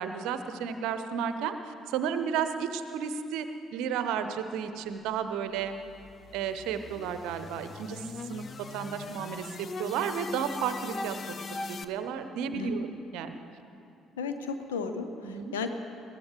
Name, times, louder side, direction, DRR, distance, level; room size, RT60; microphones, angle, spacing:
voice 1, 0.0-5.8 6.3-11.2 11.5-13.4 15.2-15.5, right 7 dB, 60° right, 9 dB, 0.7 m, -33 dB
sound 1, 5.4-11.8, left 3 dB, 35° left, 0.6 m, -41 dB
voice 2, 12.4-12.8 14.2-15.7, left 5 dB, 75° left, 8 dB, 0.7 m, -34 dB
21.0 x 15.0 x 3.3 m, 2.6 s
figure-of-eight pair, 50°, 0 cm